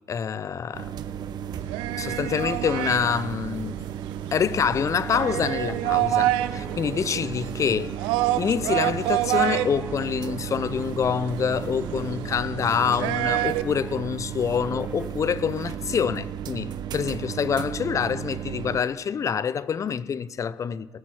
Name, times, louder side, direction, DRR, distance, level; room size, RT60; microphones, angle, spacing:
voice 1, 0.1-0.9 1.5-1.6 2.0-3.9 4.3-8.0 8.4-20.9, left 7 dB, 40° left, 0.6 m, -26 dB
sound 1, 0.7-18.8, right 9 dB, 60° right, 0.9 m, -34 dB
sound 2, 1.6-13.6, right 15 dB, 80° right, 0.5 m, -28 dB
sound 3, 5.0-12.5 12.8-14.1 14.6-15.1, right 1 dB, 10° right, 1.0 m, -44 dB
19.0 x 8.2 x 6.3 m
supercardioid pair, 75°, 8 cm